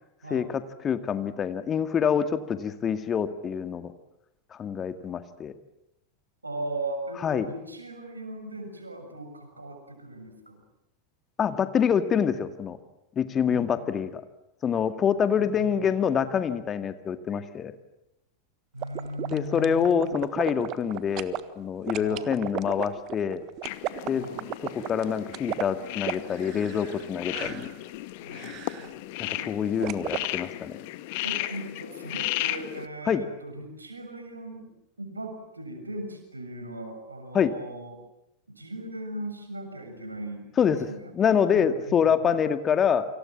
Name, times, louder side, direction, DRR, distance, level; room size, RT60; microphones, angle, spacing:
voice 1, 0.3-3.9 4.6-5.5 7.2-7.5 11.4-12.8 13.2-14.2 14.6-17.7 19.3-23.4 24.1-24.3 24.7-27.7 29.5-30.8 33.1-33.2 37.3-37.5 40.6-40.8 41.1-43.1, left 7 dB, 25° left, 10 dB, 2.0 m, -26 dB
voice 2, 6.4-10.6 13.4-14.0 15.3-15.8 18.7-20.2 21.9-22.3 24.1-24.4 27.4-27.7 28.2-29.5 29.8-29.9 31.2-34.7 35.0-38.0 38.5-42.5, right 1 dB, 85° right, 5 dB, 6.7 m, -39 dB
sound 1, 18.8-21.4 21.9-27.1 27.3-27.7 28.3-28.9 29.8-30.3, right 15 dB, 40° right, 1.5 m, -34 dB
sound 2, 23.6-32.9, left 17 dB, 50° left, 1.5 m, -35 dB
29.5 x 26.0 x 7.5 m, 0.83 s
figure-of-eight pair, 90°, 0 cm